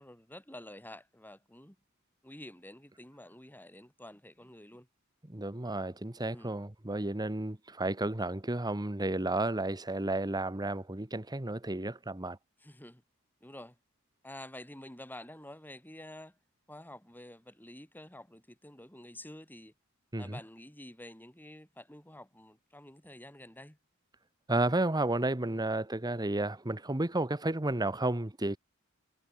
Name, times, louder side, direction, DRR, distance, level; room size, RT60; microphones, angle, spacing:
voice 1, 0.0-1.8 2.2-4.9 6.3-6.5 12.6-13.0 13.4-13.8 14.2-16.4 16.7-19.7 20.2-23.8 25.5-25.6, left 1 dB, 10° left, 6.7 m, -49 dB
voice 2, 5.3-12.4 20.1-20.4 24.5-28.6, right 2 dB, 20° right, 1.3 m, -32 dB
head